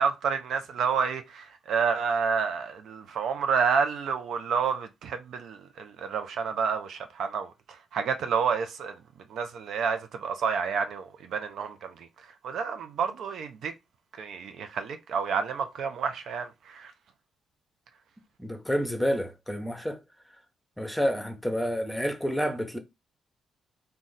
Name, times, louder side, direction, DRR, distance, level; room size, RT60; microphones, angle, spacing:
voice 1, 0.0-8.9 9.3-12.1 12.4-13.7 14.2-16.9, right 6 dB, 70° right, 0.4 m, -29 dB
voice 2, 18.4-20.0 20.8-22.8, equal, 5° left, 0.8 m, -29 dB
2.4 x 2.2 x 3.9 m
hypercardioid pair, 45°, 0 cm